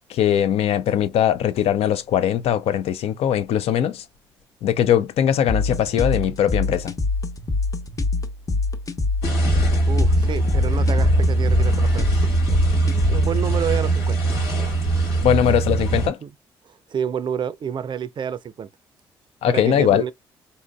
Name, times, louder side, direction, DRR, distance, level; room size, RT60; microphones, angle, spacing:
voice 1, 0.1-4.0 4.6-6.9 15.2-16.2 19.4-20.0, left 10 dB, 65° left, 0.5 m, -20 dB
sound 1, 5.5-13.5, left 3 dB, 30° left, 0.9 m, -25 dB
sound 2, 9.2-16.1, right 2 dB, 80° left, 1.7 m, -20 dB
voice 2, 9.9-12.3 13.1-14.2 16.0-16.3 16.7-18.7 19.5-20.1, right 8 dB, 45° right, 0.4 m, -29 dB
3.9 x 2.5 x 2.2 m
hypercardioid pair, 50°, 11 cm